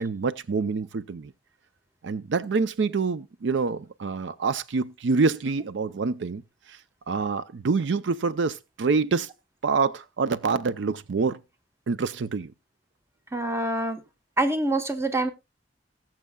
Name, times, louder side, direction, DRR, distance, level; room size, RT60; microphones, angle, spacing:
voice 1, 0.0-1.3 2.0-6.4 6.7-6.8 7.1-9.3 9.6-11.4 11.9-12.5, right 4 dB, 65° right, 0.5 m, -26 dB
voice 2, 13.3-14.0 14.4-15.3, right 2 dB, 15° right, 1.0 m, -25 dB
19.5 x 7.4 x 2.3 m
head